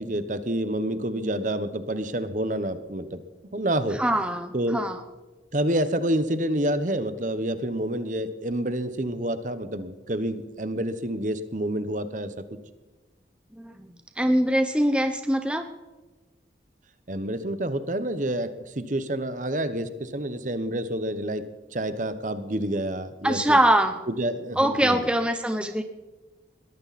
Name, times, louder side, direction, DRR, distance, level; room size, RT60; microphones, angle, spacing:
voice 1, 0.0-3.2 3.5-4.0 4.5-4.8 5.5-12.3 17.1-18.5 18.8-21.4 21.7-23.6 24.1-25.1, right 1 dB, 45° right, 11 dB, 1.1 m, -28 dB
voice 2, 4.0-5.0 13.6-13.9 14.2-15.7 23.2-24.0 24.6-25.8, right 1 dB, 5° right, 7 dB, 0.8 m, -23 dB
21.0 x 14.5 x 4.2 m, 1.2 s
head